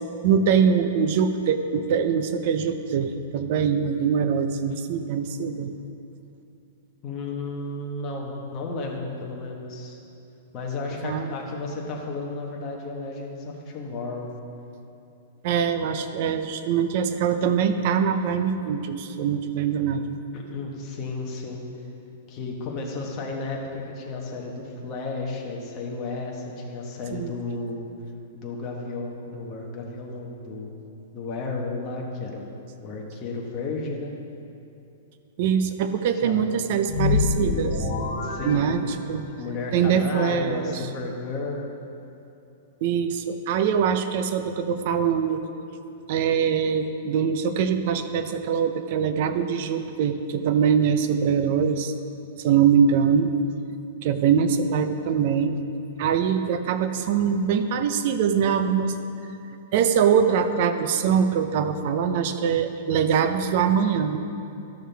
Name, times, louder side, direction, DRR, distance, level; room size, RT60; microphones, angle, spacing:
voice 1, 0.2-5.7 11.0-11.3 15.4-20.1 27.1-27.3 35.4-37.9 38.4-39.3 39.7-40.8 42.8-45.4 46.1-51.9 52.4-53.3 54.0-55.6 56.0-59.0 59.7-64.2, right 7 dB, 45° right, 9 dB, 0.5 m, -23 dB
voice 2, 7.0-10.0 10.5-14.3 20.3-21.6 22.3-27.9 28.3-30.7 31.1-32.6 32.8-34.1 36.2-36.5 38.2-38.6 39.4-41.7, left 3 dB, 25° left, -1 dB, 1.2 m, -33 dB
sound 1, 36.9-39.4, left 4 dB, 65° left, 2.1 m, -26 dB
13.0 x 6.5 x 3.4 m, 2.7 s
supercardioid pair, 165°, 0 cm